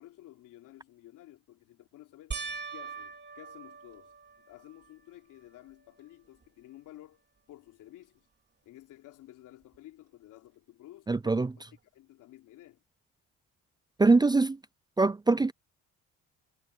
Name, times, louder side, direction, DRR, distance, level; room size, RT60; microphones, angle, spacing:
voice 1, 0.0-2.4 2.7-8.3 8.6-11.6 11.9-12.8, left 14 dB, 80° left, 3.5 m, -53 dB
sound 1, 2.3-4.9 5.5-6.1 6.4-6.5 9.7-9.8, right 5 dB, 35° right, 3.3 m, -42 dB
voice 2, 11.1-11.5 14.0-14.6 15.0-15.5, right 3 dB, 15° right, 0.5 m, -23 dB
cardioid pair, 90°, 31 cm